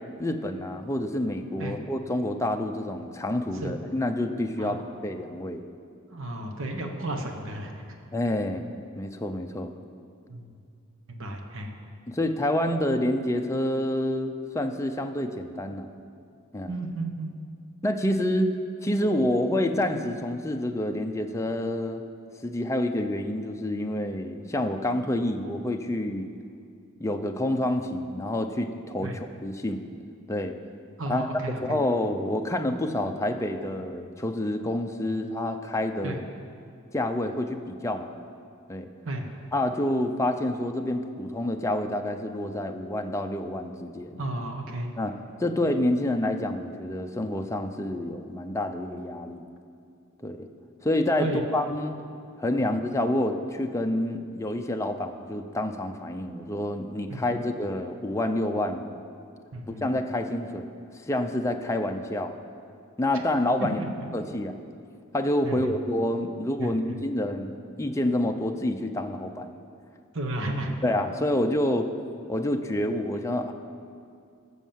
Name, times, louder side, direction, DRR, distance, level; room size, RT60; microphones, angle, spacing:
voice 1, 0.2-5.6 8.1-8.7 9.0-9.7 12.1-15.9 16.5-16.7 17.8-18.5 18.8-22.0 22.4-26.3 27.0-29.8 30.3-30.6 31.1-31.3 31.6-36.2 36.9-38.1 38.7-38.9 39.5-44.2 45.0-49.5 50.2-50.5 50.8-52.0 52.4-58.9 59.7-60.7 61.1-62.3 63.0-63.8 64.1-64.6 65.1-69.5 70.8-71.9 72.3-73.5, left 1 dB, 15° left, 4 dB, 0.6 m, -28 dB
voice 2, 6.1-7.7 10.3-10.5 11.1-11.7 16.7-17.3 29.0-29.2 31.0-31.8 36.0-36.2 39.0-39.3 44.2-44.9 51.2-51.5 52.6-52.8 57.1-57.4 59.5-59.8 63.6-63.9 65.4-65.7 66.6-67.0 70.1-70.7, right 1 dB, 65° right, 3 dB, 1.3 m, -33 dB
15.5 x 6.3 x 7.5 m, 2.4 s
head